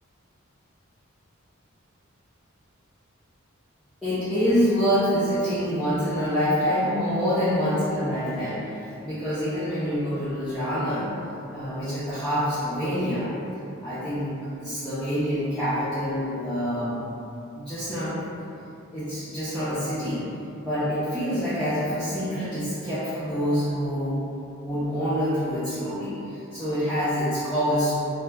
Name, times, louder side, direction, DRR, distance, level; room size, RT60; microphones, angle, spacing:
voice 1, 4.0-11.1 11.5-13.3 13.8-14.3 14.5-17.0 17.5-18.2 18.9-20.2 20.6-24.1 24.6-27.9, equal, ahead, -16 dB, 0.6 m, -26 dB
2.9 x 2.2 x 3.4 m, 2.7 s
head